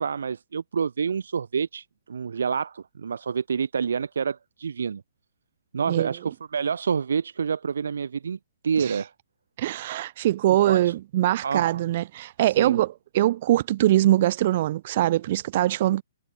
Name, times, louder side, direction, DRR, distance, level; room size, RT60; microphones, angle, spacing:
voice 1, 0.0-5.0 5.7-8.4 8.6-9.1 10.6-10.9 11.4-11.8 12.4-12.8, right 6 dB, 75° right, 2.6 m, -28 dB
voice 2, 9.6-16.0, right 14 dB, 30° right, 0.8 m, -23 dB
hypercardioid pair, 175°, 0 cm